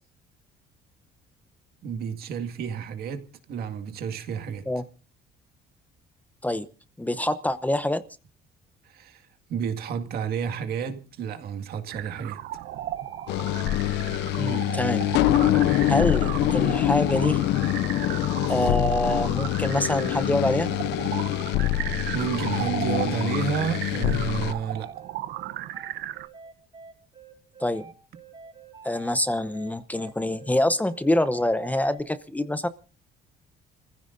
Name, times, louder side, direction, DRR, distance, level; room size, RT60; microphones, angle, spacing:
voice 1, 1.8-4.6 8.8-9.2 9.5-12.4 21.5-21.7 22.1-24.9, right 7 dB, 65° right, 2.0 m, -31 dB
voice 2, 7.0-8.0 14.4-15.1 15.9-17.4 18.5-20.7 27.6-27.8 28.8-32.7, left 1 dB, 10° left, 0.8 m, -25 dB
sound 1, 11.9-26.3, right 13 dB, 80° right, 0.8 m, -35 dB
sound 2, 12.6-32.0, right 5 dB, 30° right, 4.7 m, -47 dB
sound 3, 13.3-24.5, left 14 dB, 90° left, 0.7 m, -25 dB
29.5 x 15.5 x 2.6 m
cardioid pair, 120°, 17 cm